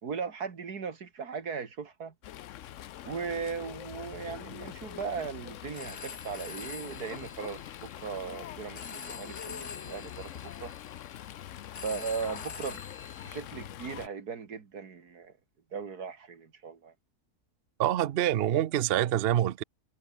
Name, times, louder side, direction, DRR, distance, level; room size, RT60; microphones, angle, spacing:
voice 1, 0.0-2.1 3.0-10.7 11.7-12.8 13.2-15.3 15.7-16.9, right 5 dB, 85° right, 2.6 m, -38 dB
Fowl, 2.2-14.1, left 12 dB, 60° left, 0.9 m, -44 dB
Telephone, 5.6-13.4, left 5 dB, 80° left, 3.1 m, -46 dB
voice 2, 17.8-19.6, right 12 dB, 55° right, 0.7 m, -26 dB
omnidirectional pair, 1.6 m